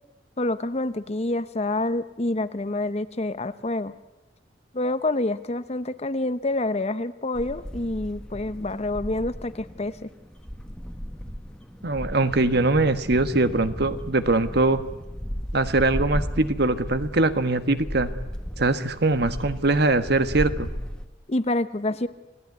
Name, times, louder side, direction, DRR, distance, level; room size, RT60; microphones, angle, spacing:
voice 1, 0.4-3.9 4.7-10.1 21.3-22.1, left 2 dB, 35° left, 13 dB, 0.9 m, -27 dB
sound 1, 7.3-21.1, equal, 5° left, 1.5 m, -35 dB
voice 2, 11.8-14.8 15.5-18.1 18.6-20.7, right 2 dB, 55° right, 11 dB, 1.4 m, -22 dB
28.5 x 18.5 x 9.6 m, 1.0 s
head